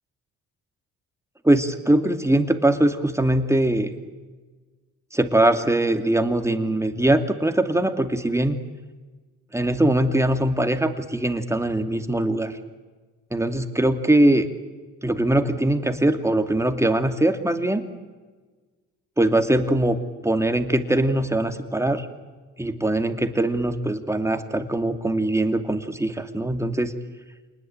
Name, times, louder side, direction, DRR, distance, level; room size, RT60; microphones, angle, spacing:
voice 1, 1.4-3.9 5.1-8.6 9.5-12.6 13.3-14.5 15.0-17.8 19.2-20.0 20.2-22.1 22.6-26.9, right 1 dB, 10° right, 7 dB, 2.7 m, -21 dB
27.5 x 20.0 x 9.0 m, 1.3 s
cardioid pair, 90°, 30 cm